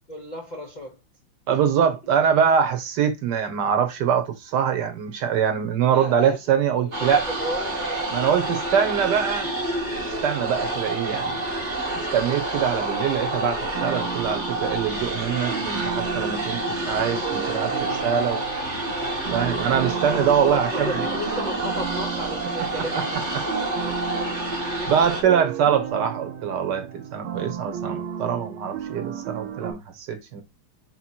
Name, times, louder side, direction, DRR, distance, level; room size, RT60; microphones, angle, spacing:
voice 1, 0.1-1.0 1.5-1.6 5.8-6.4 6.8-9.0 20.2-24.0, left 1 dB, 75° left, 0.4 m, -34 dB
voice 2, 1.5-7.3 8.1-9.5 10.2-11.3 12.1-18.4 19.3-21.1 22.6-22.7 22.9-23.0 23.3-23.4 24.9-30.4, right 8 dB, 65° right, 1.2 m, -23 dB
sound 1, 6.9-25.2, right 1 dB, 35° right, 0.8 m, -28 dB
sound 2, 13.7-29.7, right 9 dB, 85° right, 1.5 m, -34 dB
4.3 x 2.9 x 4.3 m
omnidirectional pair, 2.3 m